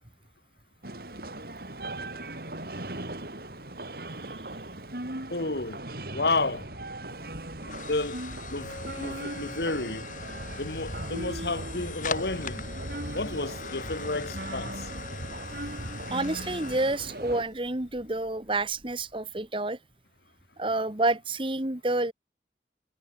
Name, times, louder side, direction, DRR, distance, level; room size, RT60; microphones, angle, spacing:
sound 1, 0.8-17.4, right 1 dB, 55° right, 3.8 m, -38 dB
voice 1, 5.3-5.8 6.1-6.7 7.9-8.2 8.5-10.1 10.6-12.6 13.1-14.9, left 3 dB, 65° left, 1.6 m, -31 dB
sound 2, 6.5-19.2, left 5 dB, 45° left, 1.9 m, -42 dB
voice 2, 16.1-19.8 20.6-22.1, right 2 dB, 30° right, 1.6 m, -29 dB
head